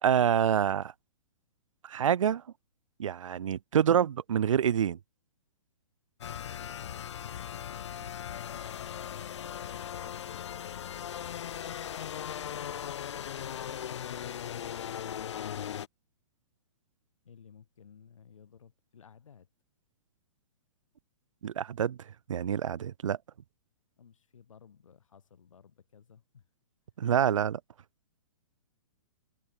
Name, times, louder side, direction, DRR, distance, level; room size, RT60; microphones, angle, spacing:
voice 1, 0.0-0.9 1.8-2.4 3.0-5.0 21.4-22.0 22.3-23.2 27.0-27.6, right 9 dB, 85° right, 0.7 m, -26 dB
sound 1, 6.2-15.9, left 9 dB, 65° left, 2.6 m, -38 dB
voice 2, 7.8-8.8 13.9-14.3 17.2-19.5 24.0-26.5, left 7 dB, 85° left, 6.3 m, -57 dB
hypercardioid pair, 165°, 16 cm